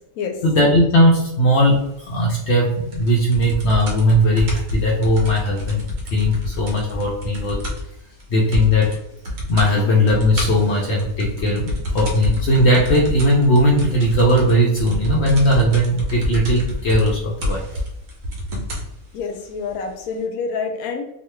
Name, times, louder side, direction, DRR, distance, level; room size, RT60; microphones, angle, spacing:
voice 1, 0.4-5.8 6.1-7.6 8.3-9.0 9.5-17.7, equal, 60° left, -2 dB, 0.7 m, -18 dB
sound 1, 2.9-8.2 8.5-9.0 9.2-9.7 10.1-18.9 19.7-19.8, left 1 dB, 65° right, 1.0 m, -27 dB
voice 2, 19.1-21.1, left 5 dB, 85° left, 5 dB, 1.1 m, -27 dB
3.0 x 2.2 x 3.1 m, 0.82 s
omnidirectional pair, 1.5 m